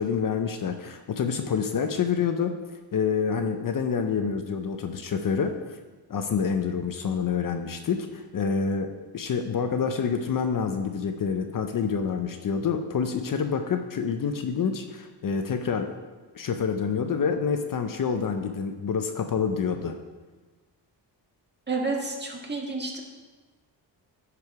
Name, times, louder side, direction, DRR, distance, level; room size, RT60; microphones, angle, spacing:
voice 1, 0.0-2.6 2.9-5.6 6.1-15.9 16.3-19.9, left 6 dB, 50° left, 6 dB, 0.7 m, -27 dB
voice 2, 21.7-23.0, right 3 dB, 25° right, 1 dB, 1.6 m, -30 dB
10.5 x 5.0 x 4.7 m, 1.3 s
cardioid pair, 105°, 42 cm